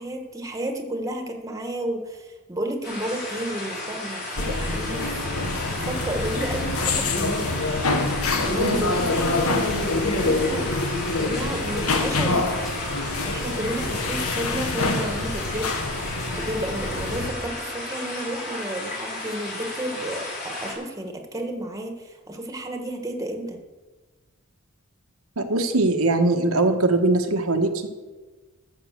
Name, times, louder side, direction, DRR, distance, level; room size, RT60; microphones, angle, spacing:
voice 1, 0.0-5.2 5.6-7.5 8.4-10.6 11.2-12.8 13.2-15.7 16.4-23.6, right 1 dB, 15° right, 4 dB, 1.5 m, -32 dB
sound 1, 2.8-20.7, left 2 dB, 50° left, 3.9 m, -34 dB
sound 2, 4.4-17.3, left 2 dB, 85° left, 1.4 m, -26 dB
voice 2, 25.4-27.9, right 2 dB, 80° right, 4 dB, 1.2 m, -21 dB
13.5 x 7.5 x 6.6 m, 1.3 s
head